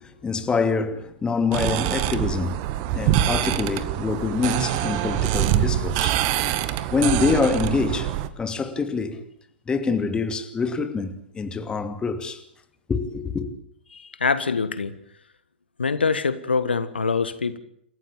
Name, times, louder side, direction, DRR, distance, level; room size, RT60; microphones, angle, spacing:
voice 1, 0.0-2.6 2.9-6.2 6.9-8.1 8.4-9.2 9.7-12.4 12.9-13.5, left 4 dB, 15° left, 2.7 m, -25 dB
sound 1, 1.5-8.3, right 12 dB, 45° right, 1.8 m, -24 dB
voice 2, 13.9-14.9 15.8-17.6, left 5 dB, 80° left, 1.5 m, -24 dB
28.0 x 15.0 x 8.8 m
figure-of-eight pair, 100°, 6 cm